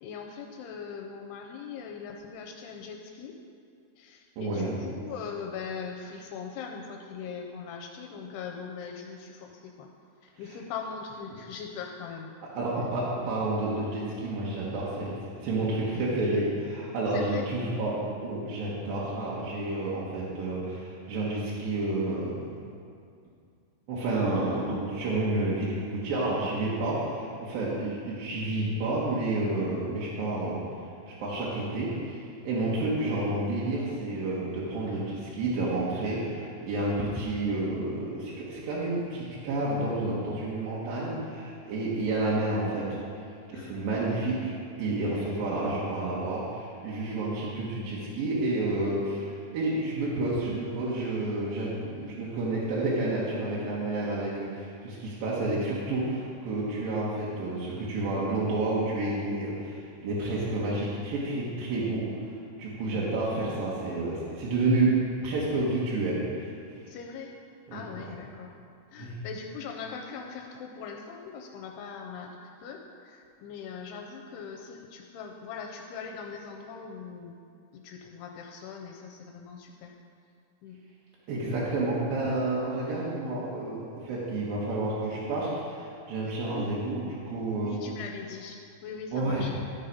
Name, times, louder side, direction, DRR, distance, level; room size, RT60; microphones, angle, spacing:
voice 1, 0.0-3.4 4.0-9.9 10.2-12.4 17.1-17.5 43.5-44.3 45.1-45.2 62.7-63.1 66.9-67.3 67.7-68.5 68.9-77.4 77.7-79.9 80.6-80.8 86.5-86.7 87.6-89.6, left 6 dB, 85° left, 1 dB, 2.6 m, -41 dB
voice 2, 4.4-4.8 12.5-15.2 15.4-22.5 23.9-30.6 31.1-42.9 43.5-44.5 44.8-64.9 65.2-66.8 67.7-68.1 69.0-69.1 81.3-87.8 89.1-89.6, right 2 dB, 65° right, -7 dB, 2.7 m, -30 dB
13.0 x 5.6 x 5.3 m, 2.3 s
omnidirectional pair, 5.0 m